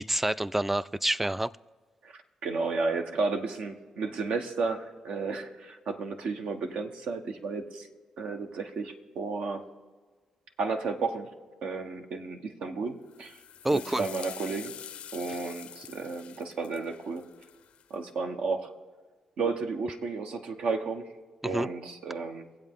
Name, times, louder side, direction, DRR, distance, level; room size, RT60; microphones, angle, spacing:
voice 1, 0.0-1.5 13.6-14.1 21.4-21.7, right 1 dB, 10° right, 0.3 m, -27 dB
voice 2, 2.0-7.9 8.2-9.6 10.6-11.3 11.6-13.4 13.7-14.8 15.1-17.2 17.9-18.7 19.4-21.1 21.4-22.5, right 4 dB, 75° right, 1.1 m, -33 dB
sound 1, 13.1-17.9, left 9 dB, 75° left, 0.5 m, -46 dB
23.5 x 8.0 x 3.7 m
cardioid pair, 75°, 2 cm